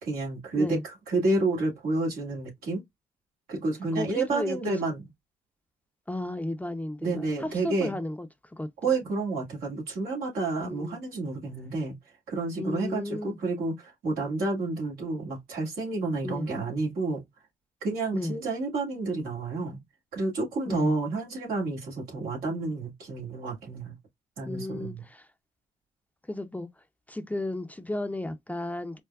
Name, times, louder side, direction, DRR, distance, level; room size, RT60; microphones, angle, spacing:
voice 1, 0.0-2.8 3.5-5.0 7.0-8.0 8.8-11.9 12.3-17.2 17.8-19.8 20.1-23.9 24.4-25.0, right 3 dB, 80° right, 2.2 m, -30 dB
voice 2, 3.9-4.7 6.1-8.7 10.6-11.0 12.6-13.4 16.2-16.5 18.1-18.4 20.7-20.9 24.5-25.3 26.3-26.7 27.1-29.0, left 1 dB, 10° left, 0.7 m, -34 dB
4.6 x 2.1 x 2.4 m
supercardioid pair, 50°, 15 cm